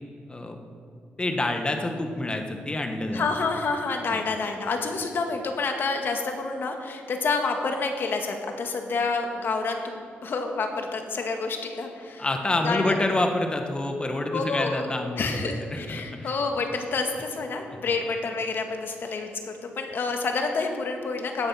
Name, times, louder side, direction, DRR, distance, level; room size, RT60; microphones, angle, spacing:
voice 1, 1.2-3.3 4.1-4.2 12.2-16.3, left 2 dB, 25° left, 5 dB, 1.6 m, -27 dB
voice 2, 3.1-12.3 12.6-13.0 14.3-14.8 15.2-21.5, left 4 dB, 60° left, 4 dB, 2.0 m, -28 dB
16.0 x 9.9 x 5.9 m, 2.4 s
cardioid pair, 80°, 4 cm